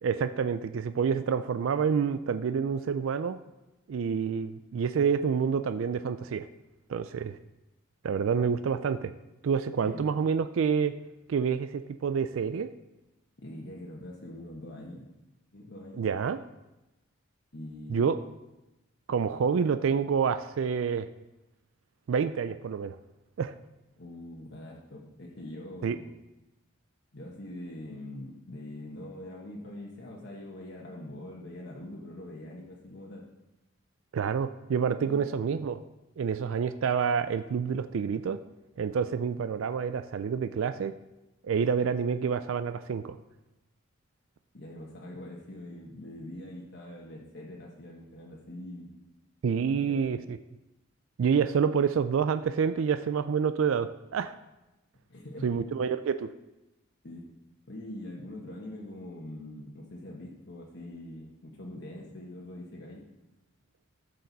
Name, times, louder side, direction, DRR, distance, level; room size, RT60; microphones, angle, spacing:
voice 1, 0.0-3.4 3.9-6.5 6.9-7.4 8.0-9.1 9.4-10.9 11.3-12.7 16.0-16.4 17.9-18.2 19.1-21.1 22.1-23.0 23.4-23.6 25.8-26.0 34.1-35.8 36.2-38.4 38.8-40.9 41.4-43.2 49.4-50.4 51.2-54.3 55.4-56.3, right 6 dB, 75° right, 11 dB, 0.4 m, -28 dB
voice 2, 13.4-15.0 15.5-16.1 17.5-18.2 24.0-26.1 27.1-33.3 35.0-35.4 44.5-49.0 49.7-50.2 55.1-55.6 57.0-57.3 57.7-63.0, left 1 dB, 55° left, -3 dB, 1.2 m, -43 dB
13.5 x 6.6 x 4.0 m, 0.99 s
head